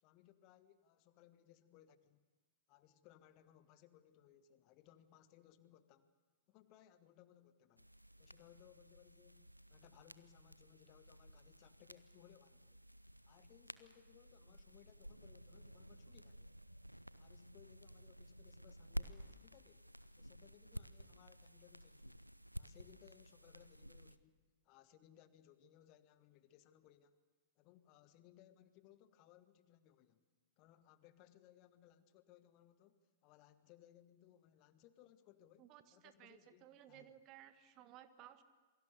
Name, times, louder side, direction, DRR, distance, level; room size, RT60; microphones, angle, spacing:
voice 1, 0.0-2.2 2.7-6.1 6.5-7.9 8.2-12.8 13.2-16.6 17.2-19.9 20.2-22.3 22.6-27.2 27.6-30.2 30.6-35.7 35.9-37.1, left 12 dB, 35° left, 12 dB, 1.3 m, -65 dB
sound 1, 7.8-24.2, equal, 90° right, 0.7 m, -53 dB
voice 2, 35.6-38.4, right 11 dB, 35° right, 11 dB, 1.4 m, -59 dB
28.0 x 22.5 x 6.7 m, 1.3 s
figure-of-eight pair, 100°, 0 cm